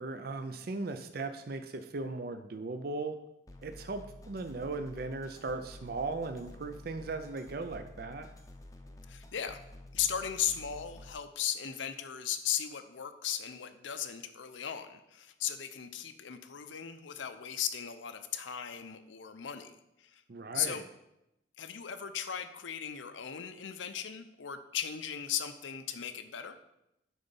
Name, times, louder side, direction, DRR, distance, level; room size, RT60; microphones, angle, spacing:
voice 1, 0.0-3.2 3.6-8.3 20.3-20.9, right 3 dB, 50° right, 8 dB, 0.5 m, -38 dB
sound 1, 3.5-11.1, left 1 dB, 20° left, 0.6 m, -50 dB
voice 2, 9.1-9.6 9.9-20.2 20.5-20.8 21.6-26.6, left 9 dB, 80° left, 9 dB, 0.6 m, -37 dB
9.4 x 3.9 x 5.4 m, 0.87 s
head